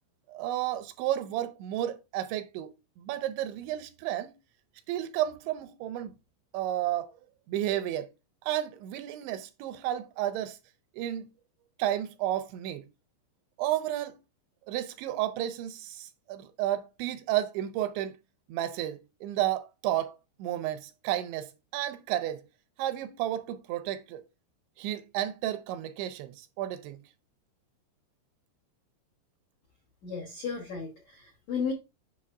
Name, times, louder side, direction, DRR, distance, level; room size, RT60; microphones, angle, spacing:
voice 1, 0.3-2.7 3.0-4.3 4.9-6.1 6.5-7.1 7.5-8.1 8.5-10.6 11.0-11.3 11.8-12.8 13.6-14.1 14.7-18.1 18.5-20.1 20.4-21.5 21.7-22.4 22.8-24.2 24.8-27.0, right 12 dB, 80° right, 2.7 m, -32 dB
voice 2, 30.0-31.7, left 6 dB, 85° left, 1.5 m, -34 dB
8.4 x 6.4 x 2.4 m
omnidirectional pair, 5.5 m